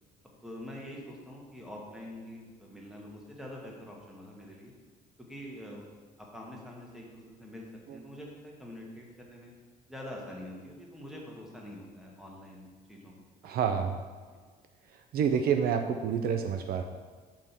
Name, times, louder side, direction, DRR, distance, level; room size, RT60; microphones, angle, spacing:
voice 1, 0.4-4.7 5.3-5.8 6.3-7.7 7.9-9.5 9.9-13.1 14.3-14.4, left 1 dB, 5° right, -2 dB, 1.6 m, -45 dB
voice 2, 13.4-14.0 15.1-16.8, right 7 dB, 65° right, 6 dB, 0.5 m, -28 dB
5.5 x 5.0 x 5.8 m, 1.5 s
cardioid pair, 110°, 17 cm